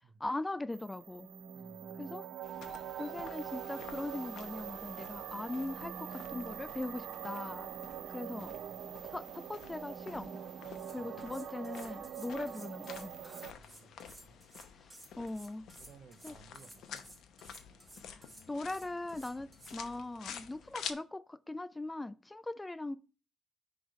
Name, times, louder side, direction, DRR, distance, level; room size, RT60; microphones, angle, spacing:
voice 1, 0.2-1.3 2.0-2.3 3.0-7.7 8.1-8.5 9.0-10.4 10.9-13.6 14.8-14.9 15.2-15.7 16.2-16.4 18.0-18.2 18.5-23.0, left 2 dB, 15° left, 0.4 m, -40 dB
sound 1, 0.7-13.5, right 9 dB, 70° right, 0.5 m, -44 dB
voice 2, 1.5-2.2 8.4-8.8 11.0-11.1 13.5-14.4 15.8-17.1, right 5 dB, 55° right, 0.8 m, -60 dB
sound 2, 2.4-20.9, left 8 dB, 75° left, 0.8 m, -51 dB
sound 3, 10.5-10.6 10.7-19.8, right 1 dB, 15° right, 2.3 m, -55 dB
5.8 x 3.4 x 5.2 m
cardioid pair, 80°, 0 cm